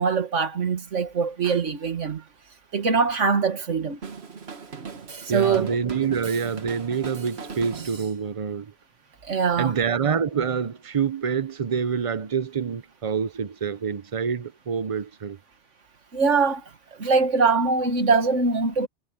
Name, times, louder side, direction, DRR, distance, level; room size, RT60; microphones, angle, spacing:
voice 1, 0.0-2.2 2.7-4.0 5.3-5.7 9.2-9.7 16.1-16.6 17.0-18.9, right 5 dB, 90° right, 2.0 m, -22 dB
Drum kit, 4.0-8.2, right 5 dB, 60° right, 1.7 m, -39 dB
voice 2, 5.3-8.7 9.6-15.4, right 6 dB, 35° right, 0.7 m, -26 dB
omnidirectional pair, 1.2 m